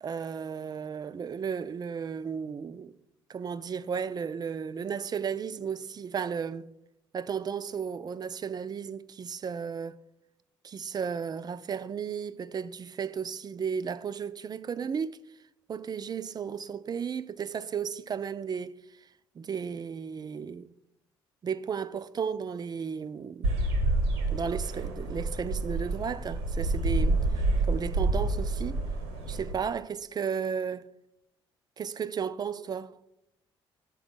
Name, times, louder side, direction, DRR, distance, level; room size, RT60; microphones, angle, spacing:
voice 1, 0.0-2.9 3.3-6.7 7.1-10.0 10.6-15.2 15.7-18.8 19.4-20.7 21.4-23.5 24.3-27.2 27.7-28.8 29.3-30.9 31.8-32.9, right 6 dB, 30° right, 0.3 m, -34 dB
sound 1, 23.4-29.5, right 2 dB, 85° right, 0.9 m, -28 dB
6.0 x 4.2 x 5.2 m
hypercardioid pair, 50°, 13 cm